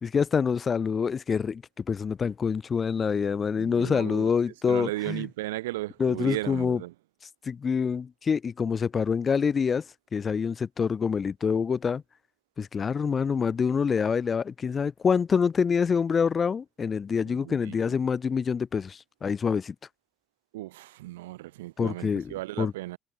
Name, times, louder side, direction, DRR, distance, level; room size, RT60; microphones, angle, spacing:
voice 1, 0.0-5.3 6.0-6.8 7.4-9.8 10.1-12.0 12.6-19.7 21.8-22.7, left 6 dB, 40° left, 1.0 m, -26 dB
voice 2, 3.6-4.3 4.7-6.9 17.2-17.9 20.5-23.0, right 17 dB, 85° right, 0.8 m, -35 dB
hypercardioid pair, 55°, 0 cm